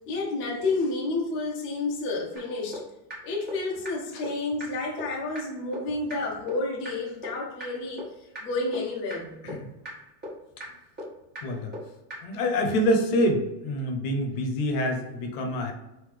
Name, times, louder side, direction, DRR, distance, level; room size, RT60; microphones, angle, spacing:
voice 1, 0.1-2.8 3.2-8.0 8.4-9.4, left 3 dB, 25° left, -3 dB, 0.6 m, -30 dB
sound 1, 2.4-2.5 2.7-2.8 3.1-3.2 3.5-3.6 3.8-3.9 4.2-4.3 4.6-4.7 5.0-5.1 5.3-5.4 5.7-5.8 6.1-6.2 6.5-6.6 6.8-6.9 7.2-7.3 7.6-7.7 8.0-8.1 8.3-8.4 8.7-8.8 9.1-9.2 9.5-9.6 9.8-9.9 10.2-10.3 10.6-10.7 11.0-11.1 11.3-11.4 11.7-11.8 12.1-12.2, equal, 20° right, 1.5 m, -36 dB
voice 2, 11.4-11.7 12.2-15.7, equal, 55° left, 4 dB, 0.9 m, -26 dB
3.7 x 2.7 x 3.2 m, 0.99 s
supercardioid pair, 145°, 47 cm